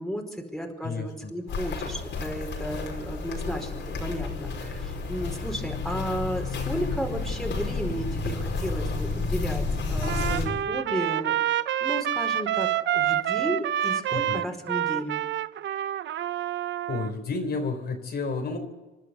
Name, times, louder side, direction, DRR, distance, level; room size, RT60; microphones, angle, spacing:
voice 1, 0.0-11.4 11.8-15.2, equal, ahead, 2 dB, 4.8 m, -33 dB
voice 2, 0.8-1.3 14.1-14.4 16.9-18.6, left 4 dB, 55° left, 4 dB, 3.8 m, -31 dB
Walk footsteps, 1.5-10.5, left 3 dB, 70° left, 5.2 m, -31 dB
Trumpet, 10.0-17.1, right 11 dB, 70° right, 0.8 m, -27 dB
28.0 x 12.0 x 8.0 m, 1.2 s
cardioid pair, 90°, 20 cm